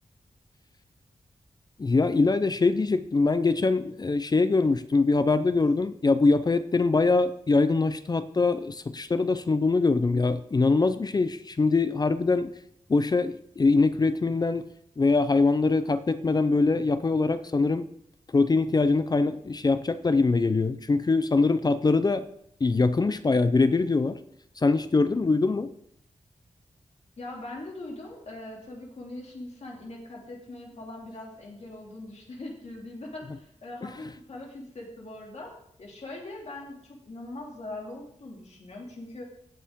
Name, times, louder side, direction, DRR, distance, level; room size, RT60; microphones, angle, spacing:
voice 1, 1.8-12.5 12.9-14.6 15.0-17.9 18.3-22.3 22.6-24.2 24.6-25.7 33.8-33.9, left 3 dB, 30° left, 12 dB, 0.5 m, -23 dB
voice 2, 27.2-35.5 35.8-39.3, left 2 dB, 60° left, -1 dB, 2.5 m, -41 dB
17.0 x 7.0 x 3.6 m, 0.73 s
wide cardioid pair, 140°, 13 cm